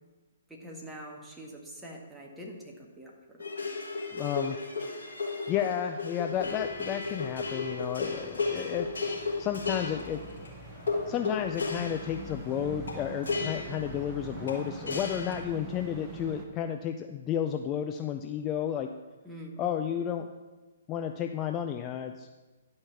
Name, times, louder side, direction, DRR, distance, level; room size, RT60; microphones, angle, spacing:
voice 1, 0.5-3.4 19.2-19.8, equal, 5° right, -2 dB, 1.7 m, -45 dB
sound 1, 3.4-15.4, left 4 dB, 70° left, 2.9 m, -35 dB
voice 2, 4.1-4.6 5.5-8.9 9.4-10.2 11.1-18.9 19.6-20.3 20.9-22.3, left 9 dB, 25° left, 6 dB, 0.4 m, -32 dB
sound 2, 6.3-16.5, right 4 dB, 25° right, 1.1 m, -45 dB
11.0 x 5.4 x 5.9 m, 1.2 s
figure-of-eight pair, 125°, 0 cm